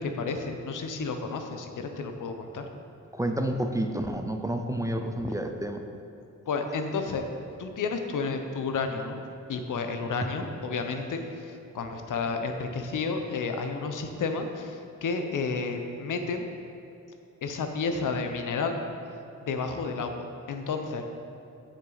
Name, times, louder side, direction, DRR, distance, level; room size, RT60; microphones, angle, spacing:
voice 1, 0.0-2.7 6.5-7.3 7.6-9.2 9.5-16.5 17.4-18.8 19.5-21.1, left 4 dB, 85° left, 5 dB, 0.8 m, -31 dB
voice 2, 3.1-5.8, right 1 dB, 10° right, 5 dB, 0.4 m, -29 dB
9.6 x 6.2 x 4.0 m, 2.8 s
wide cardioid pair, 130°, 30 cm